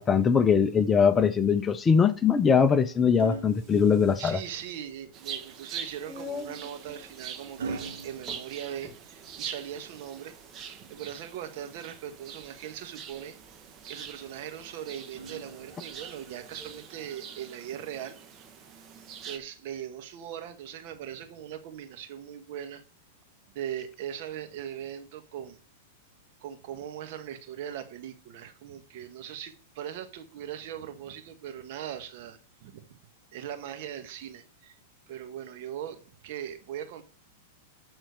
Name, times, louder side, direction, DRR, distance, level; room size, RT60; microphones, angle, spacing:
voice 1, 0.0-4.4, left 6 dB, 20° left, 0.7 m, -22 dB
sound 1, 2.0-4.5 6.1-9.3 11.0-12.2 14.2-16.0 17.2-17.5, right 4 dB, 75° right, 1.6 m, -44 dB
sound 2, 3.4-17.0, left 3 dB, 10° right, 3.2 m, -49 dB
voice 2, 4.2-10.3 10.8-13.4 13.8-18.2 19.2-22.8 23.5-25.6 26.4-33.0 33.3-34.8 35.1-37.0, right 10 dB, 60° right, 1.5 m, -40 dB
sound 3, 5.1-19.4, right 8 dB, 35° right, 1.3 m, -44 dB
11.5 x 4.4 x 6.5 m
hypercardioid pair, 120°, 0 cm